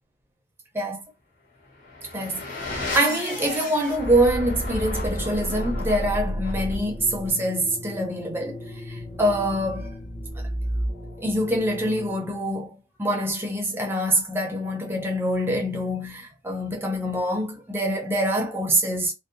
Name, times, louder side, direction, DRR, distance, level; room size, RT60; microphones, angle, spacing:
sound 1, 1.7-12.4, left 1 dB, 40° left, 1.0 m, -32 dB
voice 1, 2.1-8.6 8.9-9.9 11.2-19.1, right 1 dB, 10° right, 0.5 m, -25 dB
2.6 x 2.1 x 2.5 m
head